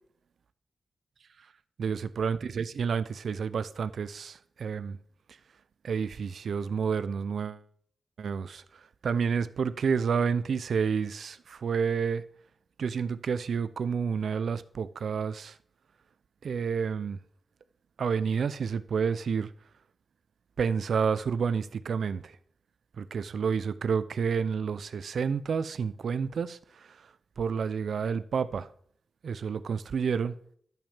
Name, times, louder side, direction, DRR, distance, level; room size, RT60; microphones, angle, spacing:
voice 1, 1.8-5.0 5.8-7.6 8.2-8.6 9.0-12.2 12.8-15.5 16.4-17.2 18.0-19.5 20.6-22.2 23.0-26.6 27.4-28.7 29.2-30.3, right 6 dB, 80° right, 0.6 m, -29 dB
12.0 x 5.3 x 7.2 m
cardioid pair, 65°, 0 cm